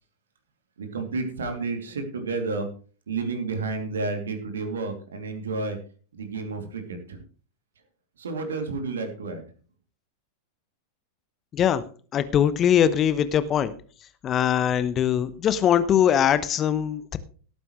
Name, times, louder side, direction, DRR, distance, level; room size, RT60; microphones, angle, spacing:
voice 1, 0.8-2.7 3.1-5.8 6.1-7.2 8.2-9.4, right 3 dB, 65° right, 5 dB, 2.8 m, -31 dB
voice 2, 11.5-11.8 12.1-13.7 14.2-17.2, left 9 dB, 30° left, 14 dB, 1.0 m, -21 dB
18.0 x 9.1 x 3.2 m, 0.39 s
figure-of-eight pair, 90°, 0 cm